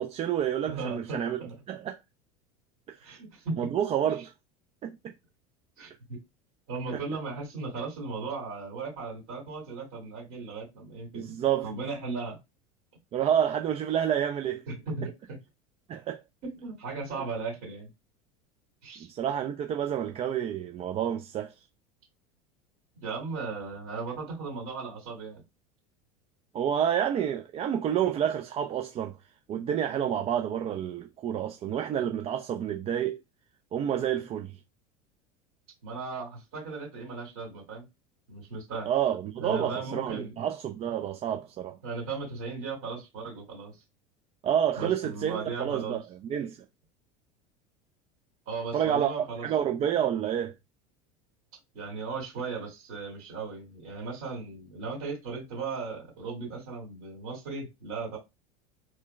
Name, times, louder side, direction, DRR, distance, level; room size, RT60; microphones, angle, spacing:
voice 1, 0.0-1.4 1.7-2.0 2.9-3.1 3.6-4.3 4.8-5.1 11.1-11.7 13.1-14.6 15.9-16.2 19.1-21.5 26.5-29.2 29.5-33.2 33.7-34.6 38.9-41.8 44.4-46.0 46.3-46.6 48.7-49.1 49.4-50.5, right 9 dB, 30° right, 0.4 m, -29 dB
voice 2, 0.7-1.6 3.0-3.6 5.8-6.2 6.7-12.4 14.7-15.4 16.4-17.9 18.8-19.1 23.0-25.4 35.8-37.8 38.3-38.9 39.4-40.3 41.8-43.8 44.8-46.0 48.5-49.5 51.7-58.2, right 4 dB, 60° right, 2.1 m, -37 dB
4.4 x 2.1 x 2.2 m
hypercardioid pair, 80°, 19 cm